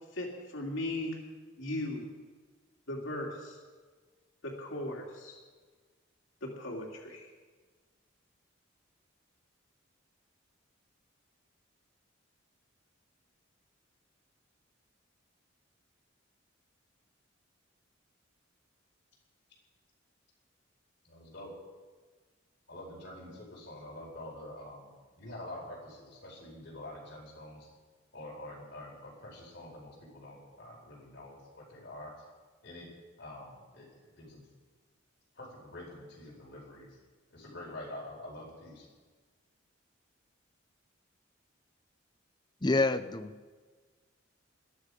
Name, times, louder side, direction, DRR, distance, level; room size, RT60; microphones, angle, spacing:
voice 1, 0.1-1.2 1.6-2.0 2.9-3.6 4.6-5.4 6.4-7.3, left 1 dB, 75° left, -1 dB, 2.6 m, -37 dB
voice 2, 21.0-21.5 22.7-27.7 28.1-32.1 32.6-32.9 33.2-33.9 34.2-34.4 35.4-36.9 37.3-38.9, left 1 dB, 55° left, -2 dB, 4.8 m, -46 dB
voice 3, 42.6-43.5, left 2 dB, 20° left, 10 dB, 0.6 m, -28 dB
21.0 x 12.5 x 5.0 m, 1.4 s
head